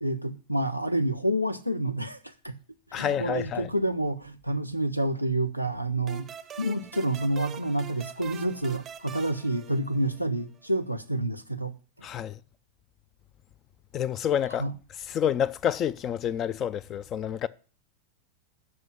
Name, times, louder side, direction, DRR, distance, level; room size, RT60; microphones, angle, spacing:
voice 1, 0.0-2.6 2.9-6.3 6.6-11.7 14.6-14.7, right 1 dB, 90° left, 0.7 m, -28 dB
voice 2, 2.9-3.7 12.0-12.4 13.9-14.7 15.1-17.5, left 9 dB, 30° left, 0.4 m, -28 dB
sound 1, 6.1-10.4, right 8 dB, 25° right, 0.6 m, -44 dB
7.8 x 5.4 x 7.5 m
figure-of-eight pair, 90°, 0 cm